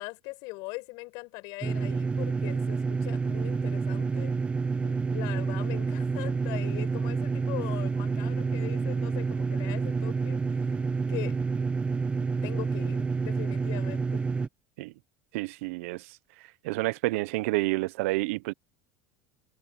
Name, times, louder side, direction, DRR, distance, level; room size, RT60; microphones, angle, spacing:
voice 1, 0.0-4.3 4.8-10.7 11.1-11.4 12.2-14.2, left 26 dB, 60° left, 5.6 m, -41 dB
sound 1, 1.6-14.5, right 4 dB, 15° right, 0.8 m, -29 dB
voice 2, 15.3-16.0 16.6-18.5, right 22 dB, 75° right, 0.6 m, -29 dB
supercardioid pair, 140°, 7 cm